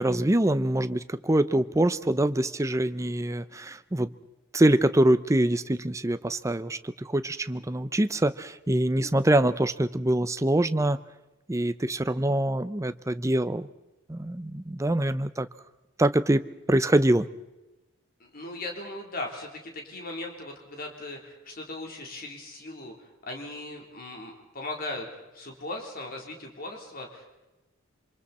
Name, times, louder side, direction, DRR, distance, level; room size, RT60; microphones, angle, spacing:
voice 1, 0.0-4.1 4.5-11.0 11.5-13.7 14.1-15.5 16.0-16.4 16.7-17.3, right 1 dB, 15° right, 12 dB, 0.6 m, -24 dB
voice 2, 18.3-22.9 23.3-25.1 25.3-27.3, left 2 dB, 45° left, 1 dB, 3.7 m, -38 dB
27.0 x 25.5 x 4.3 m, 1.0 s
head